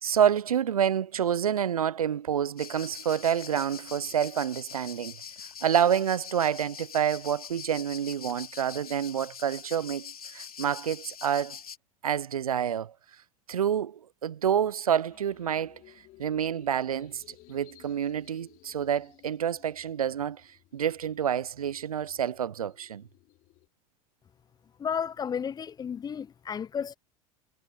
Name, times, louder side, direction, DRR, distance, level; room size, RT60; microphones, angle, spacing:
voice 1, 0.0-5.2 5.6-11.6 12.0-12.9 13.5-15.8 16.2-20.4 20.7-23.0, right 9 dB, 85° right, 0.5 m, -28 dB
sound 1, 2.6-11.8, left 7 dB, 85° left, 2.6 m, -44 dB
sound 2, 15.0-23.7, left 17 dB, 50° left, 4.4 m, -58 dB
voice 2, 24.8-27.0, left 7 dB, 20° left, 0.5 m, -32 dB
hypercardioid pair, 80°, 18 cm